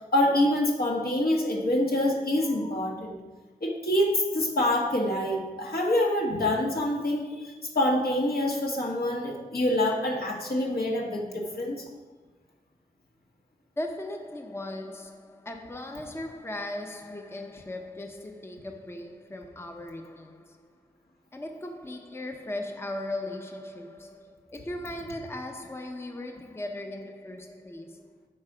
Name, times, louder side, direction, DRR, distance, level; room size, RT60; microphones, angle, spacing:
voice 1, 0.1-3.2 3.6-11.8, left 1 dB, 75° left, 1.7 m, -26 dB
voice 2, 13.8-20.8 21.3-28.1, left 1 dB, 15° left, 0.6 m, -38 dB
8.7 x 5.9 x 4.9 m
wide cardioid pair, 75°, 16 cm